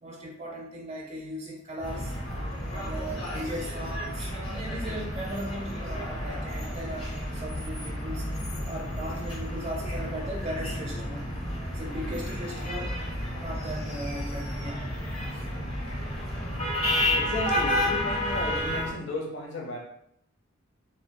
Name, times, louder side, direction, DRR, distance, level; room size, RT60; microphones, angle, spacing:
voice 1, 0.0-2.1 2.7-8.3 8.7-11.3 11.7-12.9 13.3-15.1 15.3-15.4, equal, 30° right, -1 dB, 0.5 m, -37 dB
sound 1, 1.8-18.9, left 1 dB, 30° left, 1.1 m, -31 dB
voice 2, 17.1-19.8, left 2 dB, 60° left, 0 dB, 0.8 m, -34 dB
7.0 x 2.7 x 2.2 m, 0.74 s
head